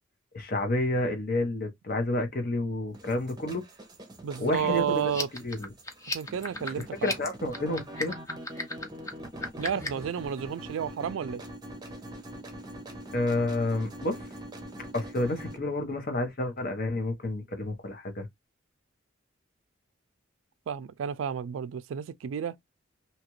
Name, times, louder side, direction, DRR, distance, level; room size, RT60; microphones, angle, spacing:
voice 1, 0.3-3.6 4.4-5.7 6.7-8.1 13.1-14.2 14.9-18.3, left 2 dB, 50° left, 0.9 m, -30 dB
sound 1, 2.9-15.6, right 1 dB, 20° right, 0.7 m, -44 dB
voice 2, 4.2-5.3 6.1-7.1 9.6-11.4 20.7-22.6, right 8 dB, 75° right, 0.3 m, -31 dB
sound 2, 5.0-10.1, left 2 dB, 15° left, 0.6 m, -35 dB
2.9 x 2.4 x 3.0 m
head